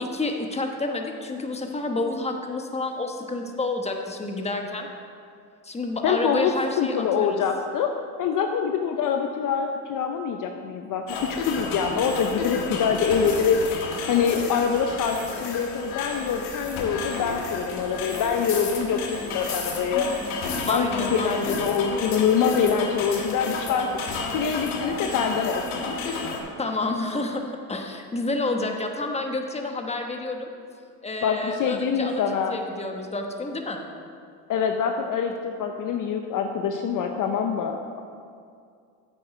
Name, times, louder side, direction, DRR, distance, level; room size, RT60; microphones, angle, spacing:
voice 1, 0.0-4.9 5.6-7.4 20.7-21.6 26.6-30.5 31.0-32.2 32.5-33.9, left 2 dB, 15° left, 3 dB, 1.1 m, -29 dB
voice 2, 6.0-6.5 6.8-7.9 8.2-20.1 20.7-23.9 24.3-26.0 31.2-32.6 34.5-38.0, left 6 dB, 45° left, 5 dB, 0.7 m, -25 dB
sound 1, 11.1-26.4, left 3 dB, 75° left, 1.6 m, -31 dB
8.6 x 7.6 x 5.0 m, 2.3 s
supercardioid pair, 90°, 43 cm